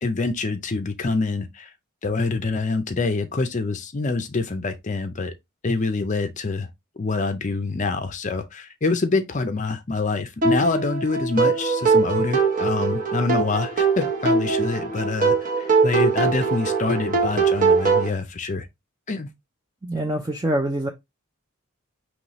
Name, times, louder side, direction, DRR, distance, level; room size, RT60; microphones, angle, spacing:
voice 1, 0.0-1.7 2.0-5.3 5.6-6.7 7.0-18.7 19.1-19.3, left 3 dB, 35° left, 0.5 m, -26 dB
sound 1, 10.4-18.1, right 4 dB, 40° right, 1.0 m, -21 dB
voice 2, 19.8-20.9, right 1 dB, 20° right, 0.5 m, -25 dB
5.6 x 3.1 x 3.0 m
head